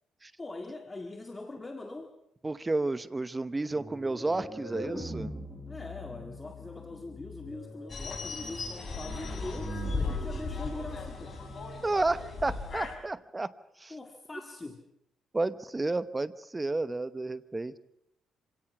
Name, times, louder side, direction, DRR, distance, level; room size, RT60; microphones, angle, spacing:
voice 1, 0.4-2.1 5.7-11.4 13.9-14.9, left 2 dB, 20° left, 4 dB, 1.9 m, -42 dB
voice 2, 2.4-5.3 11.8-13.9 15.3-17.8, right 2 dB, 20° right, 15 dB, 1.0 m, -31 dB
sound 1, 3.7-12.5, equal, 5° left, 7.8 m, -41 dB
sound 2, 7.9-12.9, left 3 dB, 40° left, 5.3 m, -37 dB
26.0 x 17.5 x 6.1 m, 0.77 s
cardioid pair, 90°, 0 cm